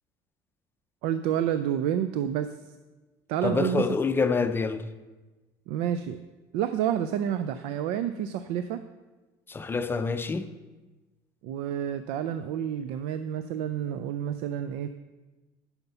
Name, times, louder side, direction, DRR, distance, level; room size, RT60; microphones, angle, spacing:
voice 1, 1.0-2.6 3.3-4.0 5.7-6.2 6.5-8.8 11.4-14.9, right 10 dB, 90° right, 0.4 m, -29 dB
voice 2, 3.4-4.9 9.5-10.5, left 4 dB, 25° left, 0.6 m, -27 dB
10.5 x 5.8 x 5.5 m
cardioid pair, 100°, 10 cm